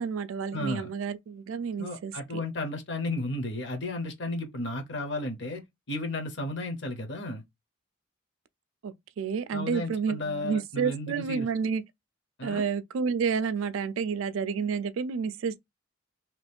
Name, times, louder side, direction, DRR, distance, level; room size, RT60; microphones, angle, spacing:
voice 1, 0.0-2.4 8.8-11.8 12.4-15.6, right 6 dB, 80° right, 0.4 m, -30 dB
voice 2, 0.5-0.9 1.8-5.6 5.9-7.4 9.5-11.5 12.4-12.6, left 2 dB, 60° left, 0.8 m, -33 dB
2.9 x 2.4 x 3.4 m
head